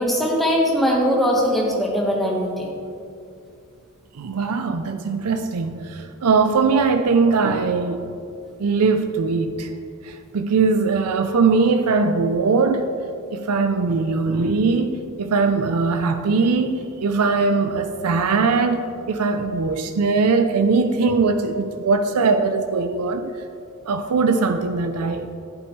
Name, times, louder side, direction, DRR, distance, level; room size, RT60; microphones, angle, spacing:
voice 1, 0.0-2.7, equal, ahead, -2 dB, 1.3 m, -20 dB
voice 2, 4.1-8.1 8.6-9.7 10.0-12.9 13.3-23.3 23.9-25.3, right 4 dB, 85° right, 7 dB, 0.5 m, -20 dB
11.0 x 8.9 x 3.2 m, 2.5 s
head